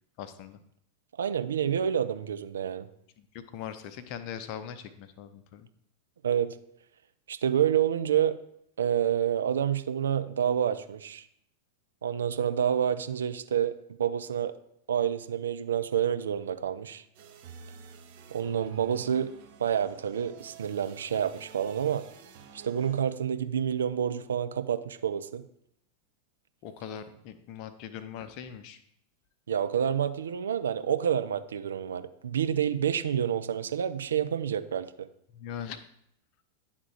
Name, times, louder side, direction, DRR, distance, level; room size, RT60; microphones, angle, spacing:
voice 1, 0.2-0.6 3.2-5.7 26.6-28.8 35.3-35.8, left 8 dB, 45° left, 10 dB, 0.7 m, -41 dB
voice 2, 1.2-2.9 6.2-6.6 7.3-8.4 8.8-11.2 12.0-13.7 14.0-14.5 14.9-17.0 18.3-19.3 19.6-22.0 22.5-25.4 29.5-35.1, right 9 dB, 65° right, 10 dB, 0.5 m, -28 dB
sound 1, 17.1-23.0, right 6 dB, 50° right, 1.2 m, -51 dB
10.0 x 3.7 x 4.7 m, 0.73 s
figure-of-eight pair, 90°, 0 cm